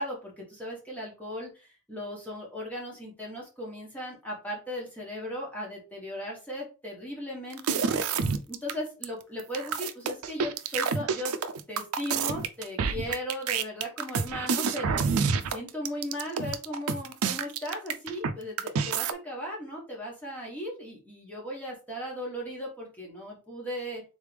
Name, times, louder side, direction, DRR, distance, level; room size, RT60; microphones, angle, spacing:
voice 1, 0.0-8.0 8.5-11.4 11.7-15.0 15.5-24.0, equal, 5° left, -3 dB, 1.4 m, -37 dB
sound 1, 7.5-8.7 9.0-9.1 9.4-18.3 18.6-19.1, right 5 dB, 75° right, 0.5 m, -28 dB
3.7 x 3.3 x 3.4 m, 0.32 s
head